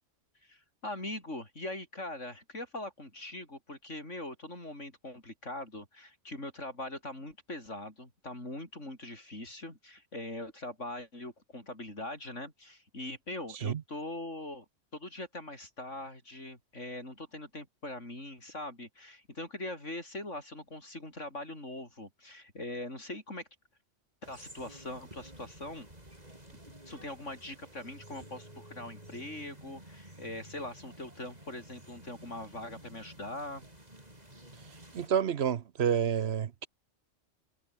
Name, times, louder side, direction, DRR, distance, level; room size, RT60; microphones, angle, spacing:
voice 1, 0.4-14.7 14.9-23.5 24.2-25.9 26.5-33.7, left 1 dB, 80° left, 7.6 m, -42 dB
sound 1, 24.2-35.1, right 1 dB, 35° right, 6.4 m, -52 dB
voice 2, 34.9-36.7, right 8 dB, 60° right, 1.0 m, -29 dB
omnidirectional pair, 1.2 m